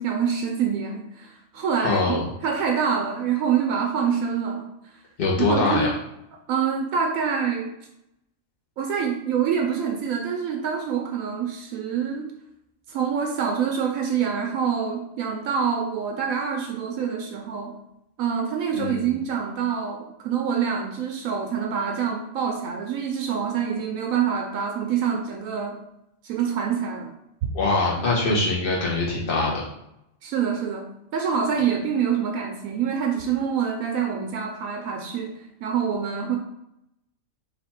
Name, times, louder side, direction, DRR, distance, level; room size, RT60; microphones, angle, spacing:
voice 1, 0.0-4.7 5.4-5.9 6.5-7.7 8.8-12.3 12.9-17.8 18.2-25.8 26.2-27.1 30.2-36.4, right 7 dB, 80° right, 3 dB, 1.0 m, -26 dB
voice 2, 1.8-2.3 5.2-5.9 18.7-19.2 27.5-29.6, left 3 dB, 45° left, -4 dB, 1.2 m, -23 dB
4.0 x 2.8 x 4.3 m, 0.81 s
omnidirectional pair, 1.4 m